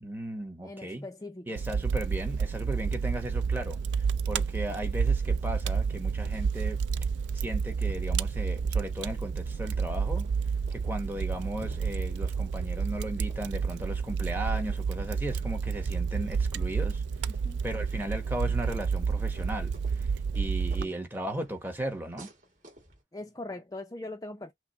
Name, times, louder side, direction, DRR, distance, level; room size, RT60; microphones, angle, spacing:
voice 1, 0.0-1.1 1.5-6.8 7.3-10.3 10.7-17.3 17.6-22.3, right 1 dB, 10° right, 1.0 m, -36 dB
voice 2, 0.6-1.5 17.4-17.6 20.8-20.9 23.1-24.5, left 2 dB, 20° left, 0.5 m, -41 dB
Fire, 1.6-20.8, right 5 dB, 70° right, 0.3 m, -30 dB
sound 1, 8.5-23.0, equal, 45° right, 2.4 m, -55 dB
5.9 x 2.1 x 4.1 m
head